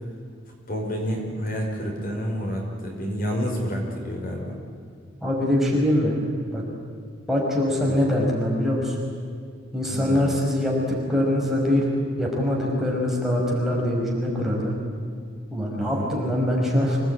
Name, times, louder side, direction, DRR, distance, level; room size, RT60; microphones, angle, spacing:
voice 1, 0.7-4.5 7.8-7.9 9.8-10.3 15.8-16.1, equal, 45° left, 0 dB, 5.0 m, -29 dB
voice 2, 5.2-6.1 6.5-6.6 7.3-9.0 9.7-11.9 12.2-14.8 15.5-17.0, left 1 dB, ahead, -4 dB, 5.4 m, -23 dB
26.5 x 19.0 x 9.8 m, 2.2 s
head